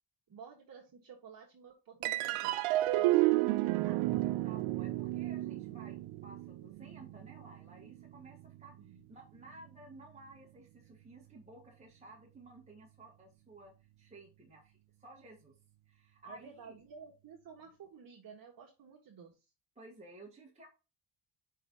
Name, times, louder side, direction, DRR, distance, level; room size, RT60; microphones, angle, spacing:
voice 1, 0.3-2.5 2.9-4.1 8.7-9.0 16.2-19.4, right 6 dB, 45° right, -1 dB, 1.6 m, -53 dB
sound 1, 2.0-8.7, right 17 dB, 85° right, 0.6 m, -32 dB
voice 2, 2.9-3.2 4.4-14.7 15.0-15.6 15.9-16.8 19.8-20.7, right 2 dB, 15° right, -3 dB, 1.9 m, -55 dB
5.4 x 4.6 x 5.6 m, 0.29 s
cardioid pair, 110°, 47 cm